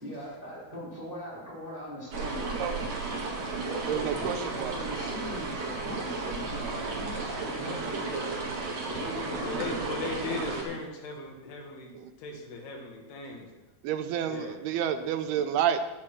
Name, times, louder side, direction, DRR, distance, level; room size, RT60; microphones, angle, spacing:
voice 1, 0.0-2.8 3.6-8.4 8.9-10.8, equal, 5° right, -7 dB, 3.7 m, -39 dB
sound 1, 2.1-10.6, right 3 dB, 50° right, 2.9 m, -34 dB
voice 2, 3.9-4.7 11.9-12.1 13.8-15.8, right 9 dB, 85° right, 8 dB, 2.7 m, -29 dB
voice 3, 9.5-11.9 12.2-13.5 14.2-14.6, left 3 dB, 80° left, 1 dB, 3.7 m, -38 dB
10.5 x 8.8 x 6.1 m, 1.1 s
omnidirectional pair, 4.6 m